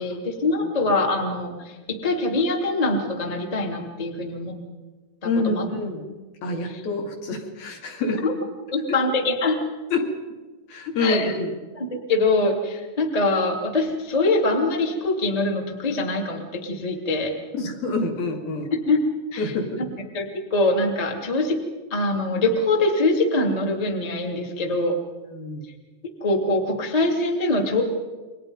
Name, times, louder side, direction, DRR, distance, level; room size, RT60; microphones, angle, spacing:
voice 1, 0.0-4.5 5.2-5.6 6.7-6.8 8.2-8.3 8.7-9.6 11.0-11.3 11.7-17.3 18.9-19.0 19.3-19.5 20.1-21.6 21.9-25.0 26.2-27.8, left 2 dB, 25° left, 1 dB, 0.8 m, -23 dB
voice 2, 5.2-6.1 6.4-8.2 9.9-10.1 10.7-11.5 17.5-18.7 19.4-19.9 25.3-25.6, left 3 dB, 55° left, 2 dB, 4.0 m, -27 dB
29.5 x 23.5 x 5.5 m, 1.3 s
omnidirectional pair, 5.4 m